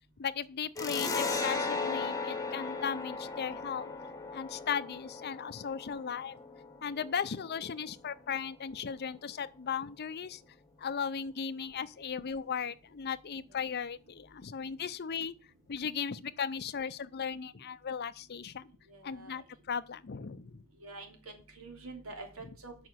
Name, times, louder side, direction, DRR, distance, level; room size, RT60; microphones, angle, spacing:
voice 1, 0.2-3.9 4.3-6.4 6.8-10.4 10.8-15.3 15.7-18.7 19.0-20.6, left 7 dB, 50° left, 0.5 m, -37 dB
sound 1, 0.8-7.9, left 4 dB, 15° left, 1.2 m, -37 dB
voice 2, 18.9-19.4 20.8-22.9, right 3 dB, 75° right, 3.1 m, -47 dB
8.8 x 5.7 x 7.8 m
head